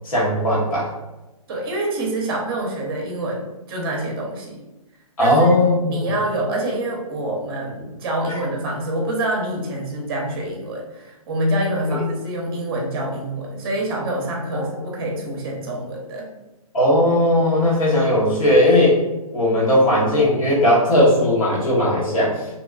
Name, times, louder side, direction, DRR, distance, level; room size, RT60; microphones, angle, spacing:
voice 1, 0.0-0.9 5.2-6.0 11.9-12.0 16.7-19.0 19.3-22.3, left 1 dB, 60° left, -5 dB, 1.2 m, -17 dB
voice 2, 1.5-4.6 5.2-5.5 5.9-16.3, right 1 dB, 40° right, 0 dB, 0.7 m, -26 dB
2.7 x 2.2 x 2.3 m, 1.0 s
hypercardioid pair, 145°, 19 cm